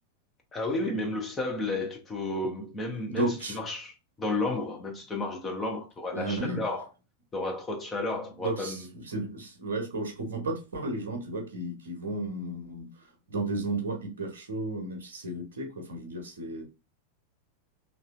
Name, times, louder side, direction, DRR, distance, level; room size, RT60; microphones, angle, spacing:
voice 1, 0.5-6.9 7.3-8.9, left 2 dB, 15° left, 0.8 m, -32 dB
voice 2, 3.1-3.6 6.1-6.6 8.4-12.9 13.3-16.6, right 2 dB, 65° right, 0.9 m, -33 dB
3.1 x 2.6 x 2.3 m
figure-of-eight pair, 90°, 0 cm